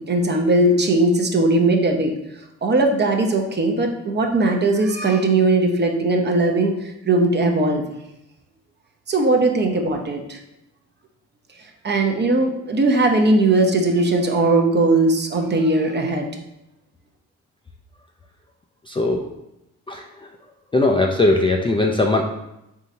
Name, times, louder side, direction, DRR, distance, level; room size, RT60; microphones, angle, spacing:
voice 1, 0.0-2.1 2.6-7.8 9.1-10.4 11.8-16.3, right 2 dB, 30° right, 3 dB, 0.7 m, -19 dB
voice 2, 18.9-19.2 19.9-20.0 20.7-22.2, left 2 dB, 15° left, 1 dB, 0.4 m, -19 dB
4.0 x 3.7 x 2.7 m, 0.88 s
supercardioid pair, 70°, 33 cm